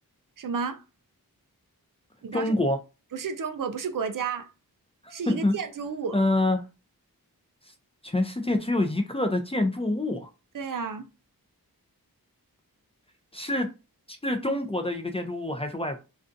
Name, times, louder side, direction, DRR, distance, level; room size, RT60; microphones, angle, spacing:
voice 1, 0.4-0.8 2.2-2.5 3.1-4.5 5.1-6.2 10.5-11.0, right 6 dB, 60° right, 0.5 m, -31 dB
voice 2, 2.3-2.8 5.0-5.5 6.1-6.6 8.0-10.3 13.3-13.7 14.1-16.0, left 2 dB, 15° left, 0.4 m, -26 dB
2.5 x 2.2 x 2.5 m
wide cardioid pair, 55°, 37 cm